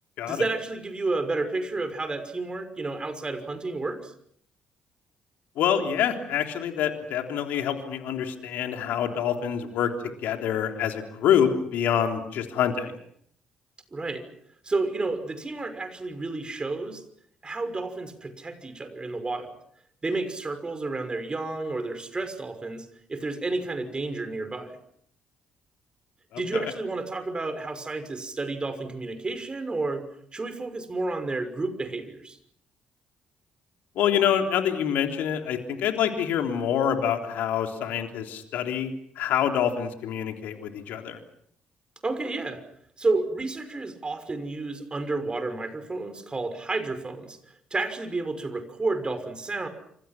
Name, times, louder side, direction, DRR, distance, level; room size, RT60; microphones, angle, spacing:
voice 1, 0.3-4.1 13.9-14.3 14.6-17.0 17.4-19.6 20.0-24.8 26.4-30.0 30.3-32.4 42.0-42.6 43.0-47.4 47.7-49.7, right 3 dB, 30° right, 9 dB, 6.0 m, -31 dB
voice 2, 5.6-9.9 10.2-13.0 26.3-26.7 34.0-41.2, left 9 dB, 65° left, 4 dB, 3.6 m, -26 dB
28.5 x 26.5 x 6.0 m, 0.66 s
hypercardioid pair, 45°, 3 cm